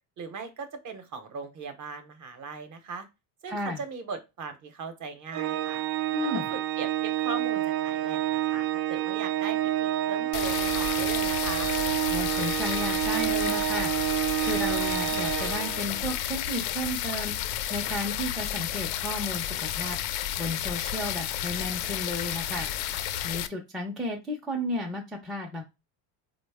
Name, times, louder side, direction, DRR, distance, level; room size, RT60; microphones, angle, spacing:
voice 1, 0.2-3.1 3.4-5.8 6.3-11.7, right 4 dB, 35° right, 7 dB, 0.7 m, -39 dB
voice 2, 3.5-3.8 6.1-6.5 12.1-13.9 14.4-17.3 17.7-20.0 20.4-22.7 23.2-25.6, left 1 dB, ahead, -1 dB, 0.4 m, -33 dB
Organ, 5.3-16.1, right 13 dB, 70° right, 0.6 m, -28 dB
sound 1, 10.3-23.5, left 11 dB, 75° left, 0.5 m, -31 dB
4.0 x 2.1 x 3.4 m, 0.25 s
cardioid pair, 125°, 49 cm